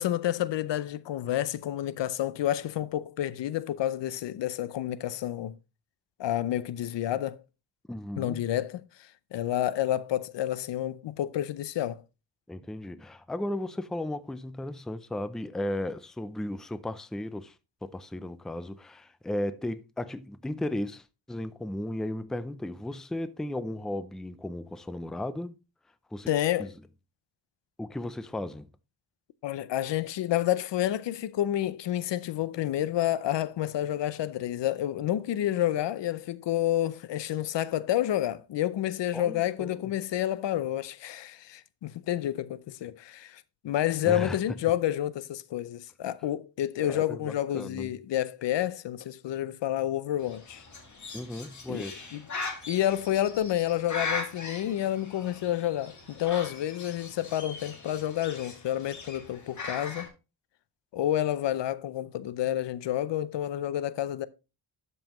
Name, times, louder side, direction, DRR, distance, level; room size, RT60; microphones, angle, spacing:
voice 1, 0.0-5.5 6.2-7.4 8.2-8.8 9.3-12.0 26.3-26.7 29.4-50.6 51.7-51.8 52.1-52.2 52.7-60.1 60.9-64.3, left 12 dB, 90° left, 0.6 m, -29 dB
voice 2, 7.9-8.4 12.5-17.5 17.8-25.5 26.1-26.3 26.6-26.7 27.8-28.7 39.1-39.7 44.0-44.4 46.8-47.9 51.1-52.1, left 1 dB, ahead, 0.4 m, -35 dB
Bird, 50.2-60.1, left 3 dB, 45° left, 2.2 m, -40 dB
12.0 x 5.5 x 3.0 m
wide cardioid pair, 140°, 42 cm